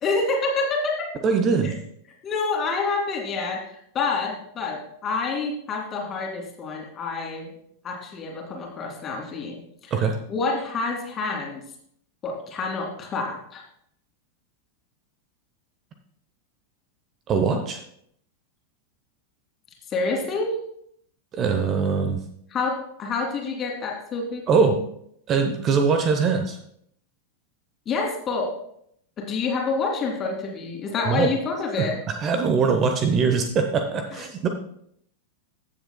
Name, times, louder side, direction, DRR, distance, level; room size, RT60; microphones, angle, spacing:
voice 1, 0.0-1.1 1.6-1.7 2.2-7.5 7.8-9.6 9.8-9.9 10.3-11.6 12.2-13.6 19.9-20.5 22.5-24.8 27.9-28.6 29.2-32.0 34.1-34.2, left 3 dB, 25° left, 1 dB, 2.3 m, -28 dB
voice 2, 1.2-1.7 9.9-10.1 17.3-17.8 21.3-22.2 24.5-24.8 25.3-26.6 31.1-31.3 31.8-31.9 32.2-34.5, right 5 dB, 30° right, 6 dB, 0.9 m, -22 dB
15.0 x 7.1 x 2.2 m, 0.70 s
figure-of-eight pair, 90°, 0 cm